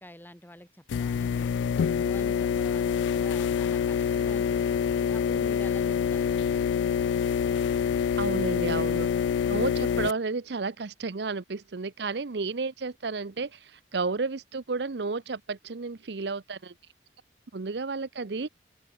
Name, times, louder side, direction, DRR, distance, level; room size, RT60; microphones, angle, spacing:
voice 1, 0.0-1.6 1.9-6.4, left 1 dB, 10° left, 2.7 m, -47 dB
sound 1, 0.9-10.1, left 7 dB, 80° left, 0.3 m, -26 dB
voice 2, 8.2-9.1 9.5-16.7 17.5-18.5, right 4 dB, 70° right, 0.7 m, -32 dB
open air
head